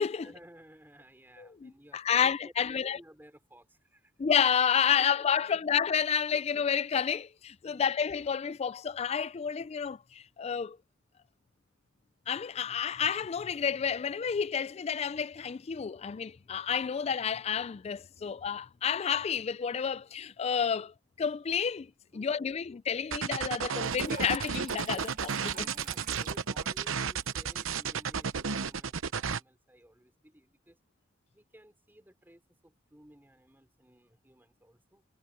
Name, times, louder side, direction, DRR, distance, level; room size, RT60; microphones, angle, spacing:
voice 1, 0.2-4.1 4.9-5.7 6.3-6.4 7.7-7.9 22.1-22.6 25.5-30.8 31.3-35.1, right 1 dB, 10° right, 5.1 m, -56 dB
voice 2, 1.4-3.0 4.2-10.8 12.3-25.7, left 7 dB, 30° left, 0.3 m, -30 dB
sound 1, 23.1-29.4, right 6 dB, 85° right, 0.9 m, -32 dB
Water tap faucet / Trickle dribble, 23.8-28.8, right 7 dB, 45° right, 1.9 m, -49 dB
head